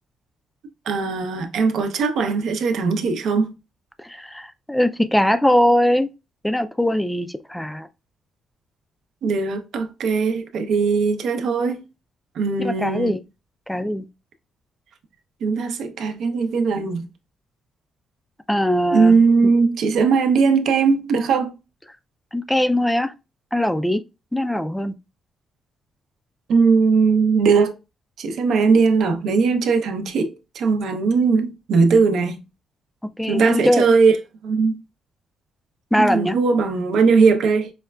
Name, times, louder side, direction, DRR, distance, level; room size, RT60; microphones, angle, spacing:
voice 1, 0.9-3.5 9.2-11.8 12.4-13.2 15.4-17.1 18.9-21.5 26.5-27.7 28.2-32.4 33.3-34.2 34.4-34.8 36.0-37.7, right 4 dB, 70° right, 0.6 m, -19 dB
voice 2, 4.0-6.1 6.4-7.9 12.6-13.2 13.7-14.0 18.5-19.2 19.4-19.5 22.3-23.1 23.5-24.0 24.3-24.9 33.2-33.9 35.9-36.4, equal, 5° left, 0.3 m, -21 dB
4.8 x 2.2 x 2.2 m
cardioid pair, 90°, 0 cm